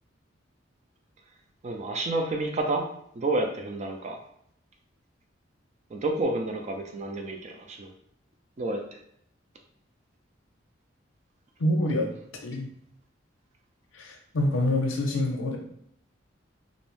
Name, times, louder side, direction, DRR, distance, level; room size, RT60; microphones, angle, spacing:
voice 1, 1.6-2.9 3.1-4.2 5.9-7.9 8.6-9.0, right 2 dB, 35° right, 3 dB, 0.4 m, -29 dB
voice 2, 11.6-12.1 12.4-12.7 13.9-15.6, left 1 dB, 85° left, 2 dB, 0.6 m, -26 dB
2.6 x 2.0 x 3.0 m, 0.68 s
head